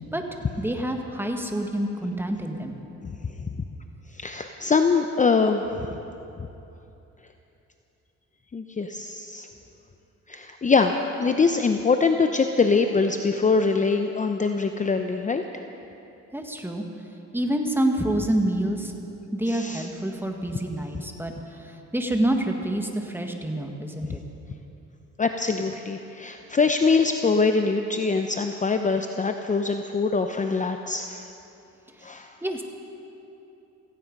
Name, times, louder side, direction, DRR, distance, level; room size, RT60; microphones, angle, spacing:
voice 1, 0.6-2.8 16.3-16.8 17.3-18.9 19.3-21.3 21.9-24.2 32.4-32.6, right 1 dB, 5° right, 3 dB, 1.7 m, -27 dB
voice 2, 3.0-3.5 4.1-5.9 8.5-9.5 10.3-10.9 11.2-15.6 19.5-19.9 25.2-31.3 32.0-32.3, left 4 dB, 25° left, 6 dB, 0.7 m, -23 dB
17.0 x 15.5 x 5.3 m, 2.9 s
cardioid pair, 90°, 30 cm